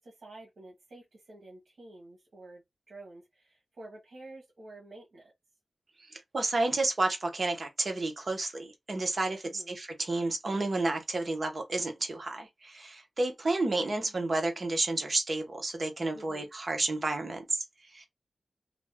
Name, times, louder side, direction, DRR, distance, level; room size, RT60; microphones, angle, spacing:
voice 1, 0.0-2.6 2.9-5.3 9.4-9.8 13.6-14.4 16.1-16.5, right 2 dB, 70° right, 1.0 m, -50 dB
voice 2, 6.0-18.1, right 2 dB, 40° right, 0.8 m, -31 dB
2.5 x 2.1 x 3.3 m
wide cardioid pair, 135°, 0 cm